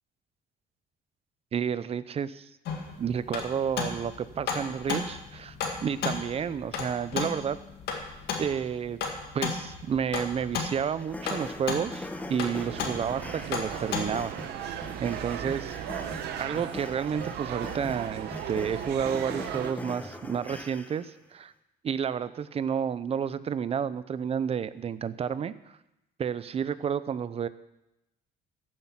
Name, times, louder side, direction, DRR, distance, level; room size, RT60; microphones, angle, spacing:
voice 1, 1.5-2.5 3.0-5.6 5.8-7.6 8.4-9.0 9.3-14.3 14.6-15.8 16.4-21.5 21.8-25.5 26.2-27.5, right 7 dB, 35° right, 15 dB, 0.6 m, -31 dB
sound 1, 2.6-14.3, left 5 dB, 70° left, 2.1 m, -35 dB
sound 2, 11.0-21.2, left 1 dB, 10° left, 1.1 m, -41 dB
sound 3, 12.6-19.7, right 9 dB, 75° right, 1.0 m, -37 dB
14.5 x 7.7 x 5.7 m, 0.90 s
cardioid pair, 110°, 17 cm